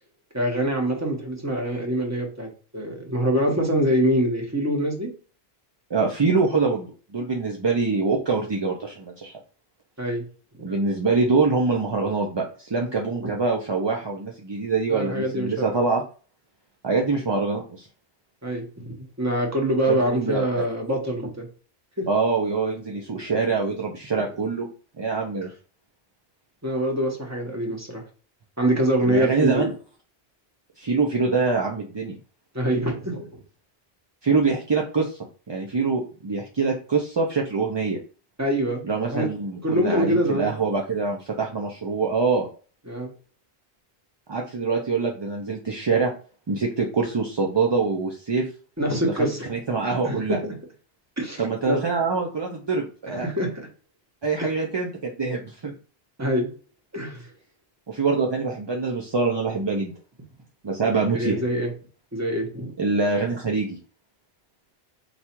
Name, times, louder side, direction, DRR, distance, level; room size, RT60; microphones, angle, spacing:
voice 1, 0.3-5.1 10.0-10.2 10.5-10.6 13.2-13.3 14.9-15.7 18.4-21.5 22.0-22.1 26.6-28.0 28.6-29.7 32.5-33.3 38.4-39.3 39.6-40.5 42.9-43.1 48.8-49.5 50.0-50.4 51.2-51.8 53.1-53.7 54.4-54.5 56.2-56.5 56.9-57.3 61.1-61.7 62.1-62.7, equal, 15° right, 1 dB, 0.9 m, -25 dB
voice 2, 5.9-6.9 7.1-9.3 10.6-16.0 16.8-17.9 19.9-20.7 22.1-24.7 25.0-25.5 29.0-29.7 30.8-32.2 34.2-35.2 35.5-38.0 38.8-42.5 44.3-46.1 46.5-48.5 49.0-50.4 51.4-53.3 54.2-55.7 57.9-59.9 60.6-61.4 62.8-63.8, right 4 dB, 35° right, 0 dB, 0.4 m, -24 dB
4.1 x 2.3 x 4.4 m, 0.38 s
omnidirectional pair, 1.0 m